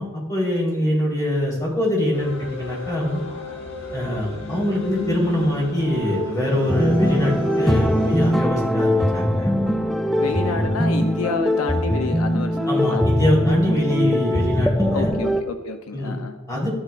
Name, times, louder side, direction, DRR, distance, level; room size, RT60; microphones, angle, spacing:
voice 1, 0.0-3.2 3.9-9.5 12.7-15.1 15.9-16.2 16.5-16.7, left 1 dB, 15° left, -5 dB, 3.8 m, -23 dB
sound 1, 2.1-8.3, left 2 dB, 60° left, 2.7 m, -33 dB
sound 2, 6.7-15.4, equal, ahead, 0.4 m, -21 dB
voice 2, 10.2-13.1 14.9-16.4, left 4 dB, 80° left, 6 dB, 0.7 m, -29 dB
13.5 x 11.5 x 2.5 m, 1.1 s
head